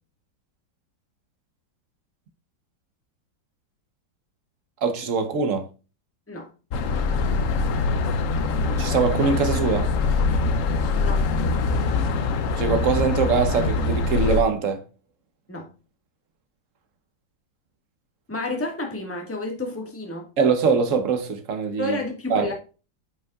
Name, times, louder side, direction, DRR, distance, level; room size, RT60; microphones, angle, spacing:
voice 1, 4.8-5.7 8.8-9.9 12.6-14.8 20.4-22.0 22.3-22.5, right 5 dB, 50° right, 1.2 m, -23 dB
sound 1, 6.7-14.4, left 3 dB, 60° left, 0.9 m, -23 dB
voice 2, 11.0-11.3 15.5-15.7 18.3-20.3 21.8-22.5, left 2 dB, 10° left, 1.5 m, -30 dB
9.3 x 5.6 x 2.4 m
omnidirectional pair, 2.0 m